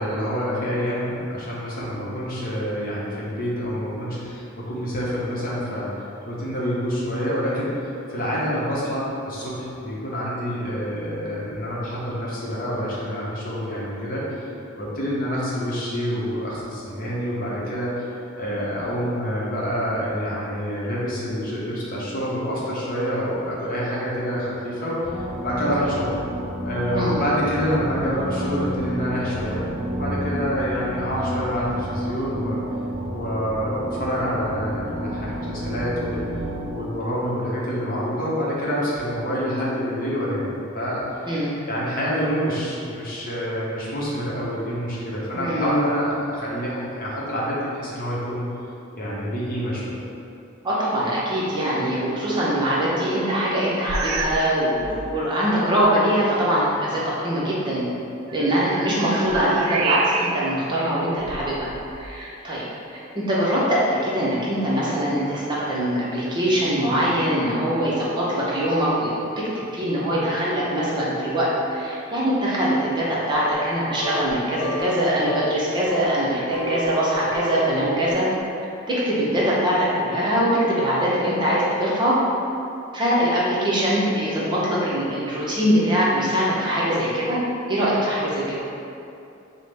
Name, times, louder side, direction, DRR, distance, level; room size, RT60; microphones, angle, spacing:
voice 1, 0.0-14.5 14.8-26.1 26.6-32.6 33.1-36.2 36.7-40.5 40.7-41.3 41.7-48.4 48.9-50.0, equal, 45° left, -6 dB, 0.8 m, -27 dB
sound 1, 25.0-36.7, equal, 60° right, 0.7 m, -30 dB
voice 2, 45.4-45.8 50.6-57.8 58.3-62.6 62.9-69.5 69.7-76.4 76.7-78.3 78.9-82.1 82.9-87.4 87.7-88.6, equal, 20° right, -7 dB, 0.6 m, -22 dB
sound 2, 53.9-54.5 54.8-55.1 55.8-55.9 58.3-60.6 61.2-62.2, right 4 dB, 85° right, 0.3 m, -29 dB
sound 3, 73.3-73.8 74.0-74.3 74.6-75.0 75.3-75.5 75.9-76.9 77.1-78.1, equal, 85° left, 0.4 m, -30 dB
5.6 x 2.1 x 3.3 m, 2.7 s
head